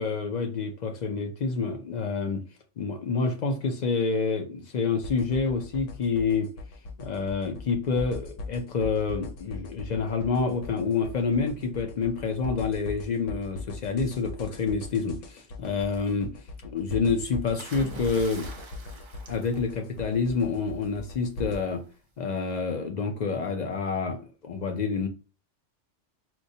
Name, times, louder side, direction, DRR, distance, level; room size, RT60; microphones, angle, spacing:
voice 1, 0.0-2.4 2.8-6.5 7.0-16.3 16.6-18.5 19.3-21.8 22.2-25.1, left 4 dB, 50° left, 0.5 m, -28 dB
sound 1, 5.0-21.6, left 3 dB, 90° left, 1.0 m, -40 dB
sound 2, 17.6-20.3 21.6-21.9, right 2 dB, 45° right, 0.3 m, -44 dB
4.4 x 2.1 x 2.7 m
omnidirectional pair, 1.2 m